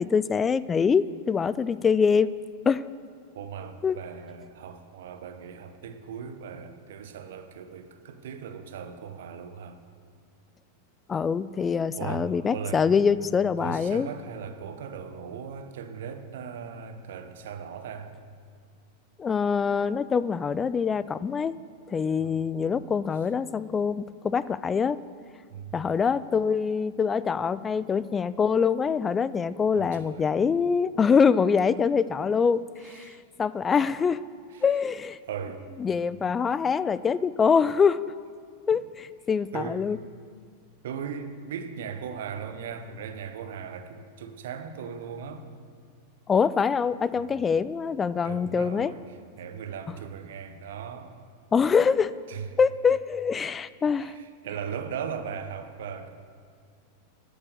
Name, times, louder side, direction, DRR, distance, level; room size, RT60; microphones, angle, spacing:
voice 1, 0.0-2.3 2.6-2.9 3.8-4.0 11.1-14.1 19.2-21.5 21.9-25.0 25.7-34.2 34.6-35.2 35.8-38.0 38.7-40.0 46.3-48.9 51.5-52.1 52.6-54.2, left 6 dB, 20° left, 18 dB, 0.3 m, -24 dB
voice 2, 3.3-9.8 12.0-12.9 13.6-18.1 22.2-22.4 25.5-25.7 29.7-30.3 32.8-33.2 34.5-34.7 35.2-35.7 39.5-39.8 40.8-45.5 47.2-47.5 48.2-51.1 52.3-52.5 53.9-56.1, right 7 dB, 60° right, 8 dB, 0.9 m, -38 dB
12.5 x 6.7 x 6.7 m, 2.1 s
figure-of-eight pair, 90°, 0 cm